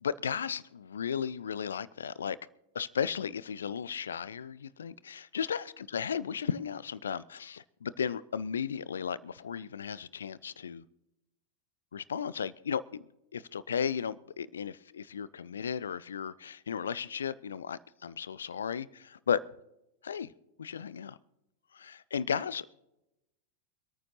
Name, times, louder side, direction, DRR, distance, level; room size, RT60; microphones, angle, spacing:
voice 1, 0.0-2.4 2.7-10.8 11.9-13.0 13.3-19.4 20.0-20.3 20.6-21.2 21.7-22.7, left 7 dB, 70° left, 19 dB, 0.5 m, -35 dB
25.0 x 9.4 x 3.2 m, 0.92 s
figure-of-eight pair, 90°, 0 cm